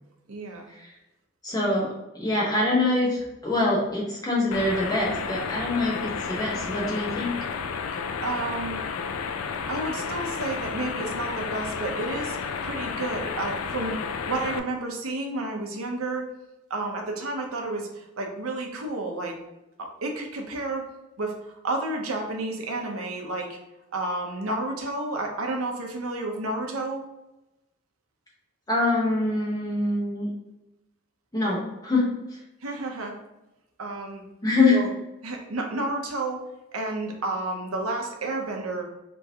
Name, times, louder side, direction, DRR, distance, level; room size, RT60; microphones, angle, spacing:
voice 1, 0.3-0.7 8.2-8.8 9.7-12.4 12.6-14.0 14.3-16.3 16.7-19.4 19.8-20.9 21.2-23.6 23.9-27.0 32.6-33.1 33.8-34.2 34.7-34.9 35.2-36.4 36.7-38.9, right 2 dB, 85° right, 2 dB, 0.8 m, -31 dB
voice 2, 1.4-7.4 28.7-30.3 31.3-32.2 34.4-34.9, left 2 dB, 15° left, -4 dB, 0.9 m, -25 dB
sound 1, 4.5-14.6, left 5 dB, 85° left, 0.3 m, -32 dB
3.5 x 3.0 x 2.8 m, 0.98 s
head